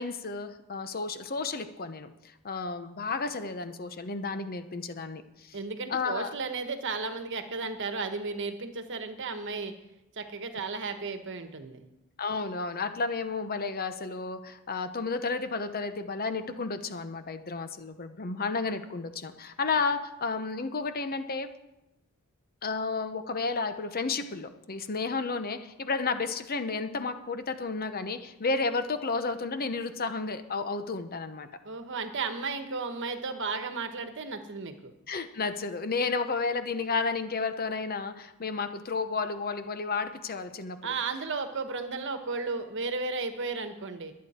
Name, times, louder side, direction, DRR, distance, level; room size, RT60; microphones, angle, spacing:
voice 1, 0.0-5.6 5.9-6.3 12.2-21.5 22.6-31.5 35.1-40.8, left 4 dB, 45° left, 9 dB, 0.9 m, -32 dB
voice 2, 5.5-9.7 10.1-11.8 31.6-34.9 40.8-44.1, right 4 dB, 55° right, 7 dB, 1.3 m, -34 dB
22.5 x 8.6 x 4.3 m, 0.94 s
head